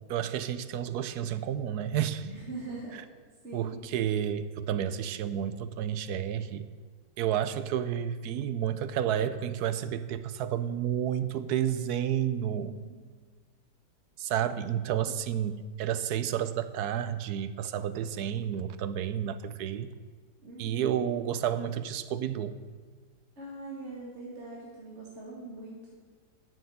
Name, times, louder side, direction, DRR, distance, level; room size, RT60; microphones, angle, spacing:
voice 1, 0.1-2.3 2.9-3.0 3.5-6.7 7.2-12.7 14.2-19.9 20.6-22.6, right 9 dB, 70° right, 13 dB, 1.1 m, -31 dB
voice 2, 2.2-3.0 3.4-3.8 12.4-13.0 20.4-21.1 23.4-26.0, right 2 dB, 40° right, -4 dB, 2.1 m, -42 dB
10.5 x 6.8 x 8.4 m, 1.5 s
omnidirectional pair, 1.8 m